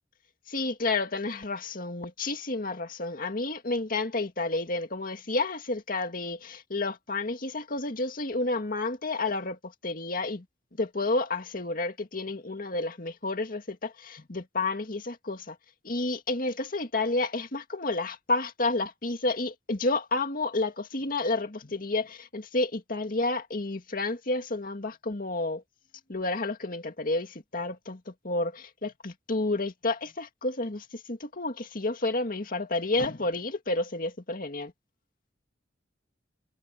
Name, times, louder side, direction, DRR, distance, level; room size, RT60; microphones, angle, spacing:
voice 1, 0.5-9.6 9.8-10.4 10.8-15.6 15.8-25.6 26.1-34.7, left 2 dB, 55° left, 2.1 m, -30 dB
head